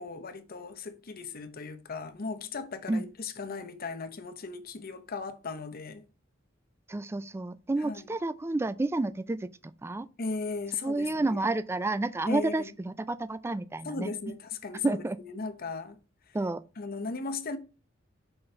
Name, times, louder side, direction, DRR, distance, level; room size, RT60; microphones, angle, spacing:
voice 1, 0.0-6.0 7.8-8.1 10.2-11.4 12.3-12.7 13.8-16.0 16.8-17.6, left 4 dB, 50° left, 0.8 m, -37 dB
voice 2, 6.9-9.5 9.8-10.1 10.8-14.1 14.8-15.2 16.3-16.6, right 2 dB, 15° right, 0.3 m, -30 dB
5.7 x 4.0 x 4.4 m
head